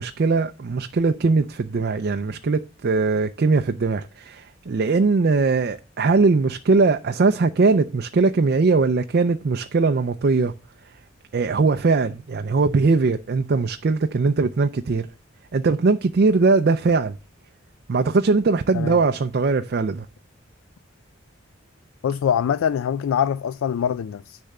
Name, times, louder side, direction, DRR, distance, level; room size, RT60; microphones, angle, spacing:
voice 1, 0.0-10.5 11.3-15.1 15.5-17.2 17.9-20.1, right 4 dB, 50° right, 0.4 m, -20 dB
voice 2, 22.0-24.4, left 8 dB, 90° left, 0.3 m, -23 dB
10.0 x 3.5 x 6.5 m
head